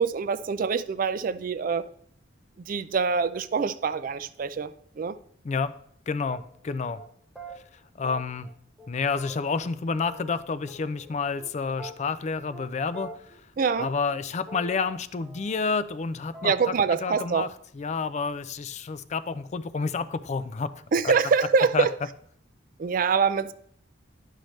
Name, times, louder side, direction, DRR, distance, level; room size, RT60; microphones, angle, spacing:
voice 1, 0.0-1.9 2.7-5.2 13.6-13.9 16.4-17.5 20.9-21.9 22.8-23.5, right 5 dB, 45° right, 0.3 m, -25 dB
voice 2, 6.1-7.0 7.5-7.6 7.9-8.5 8.9-13.4 13.8-16.7 17.0-17.5 17.7-20.7 21.0-21.1 21.7-21.9, left 4 dB, 35° left, 0.4 m, -29 dB
sound 1, 6.3-6.7 7.0-7.1 7.4-7.6 8.0-8.5 8.8-8.9 9.1-10.4 10.7-11.5 11.8-12.3 12.5-12.7 12.9-13.4 13.7-16.1 16.3-16.8 17.1-17.3, right 2 dB, 5° right, 0.9 m, -44 dB
10.0 x 6.4 x 3.2 m
head